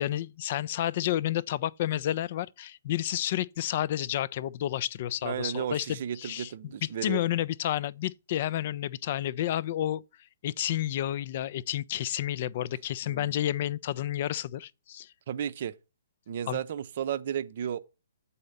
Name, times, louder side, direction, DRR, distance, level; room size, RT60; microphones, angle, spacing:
voice 1, 0.0-6.5 7.0-10.0 10.4-15.1 16.5-16.6, left 12 dB, 40° left, 0.3 m, -30 dB
voice 2, 5.2-7.2 13.0-13.4 15.3-15.7 16.3-17.8, right 9 dB, 45° right, 0.6 m, -33 dB
8.6 x 4.2 x 6.5 m
figure-of-eight pair, 125°, 0 cm